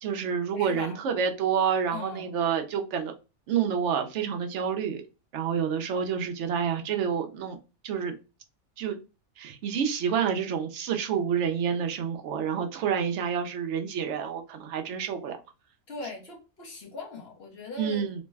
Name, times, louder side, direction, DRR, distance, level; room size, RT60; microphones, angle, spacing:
voice 1, 0.0-3.1 3.5-5.0 5.3-7.6 7.8-8.1 8.8-9.0 9.4-15.4 17.8-18.2, right 7 dB, 65° right, 5 dB, 0.8 m, -28 dB
voice 2, 0.6-1.0 1.9-2.3 15.9-18.0, left 3 dB, 50° left, 0 dB, 1.0 m, -40 dB
3.1 x 2.1 x 3.3 m, 0.30 s
omnidirectional pair, 1.5 m